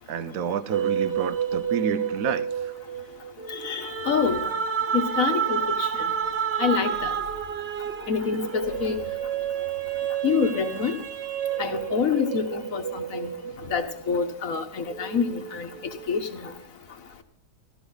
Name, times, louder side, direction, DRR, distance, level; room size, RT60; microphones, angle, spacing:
voice 1, 0.1-2.7, right 7 dB, 90° right, 1.2 m, -29 dB
sound 1, 0.7-14.4 14.9-16.5, right 8 dB, 55° right, 1.0 m, -30 dB
voice 2, 3.5-4.4 4.9-5.9 6.6-7.1 8.1-9.0 10.2-10.9 11.6-13.3 13.7-15.7 16.1-16.5, left 6 dB, 85° left, 1.7 m, -26 dB
14.5 x 14.0 x 3.9 m
omnidirectional pair, 1.4 m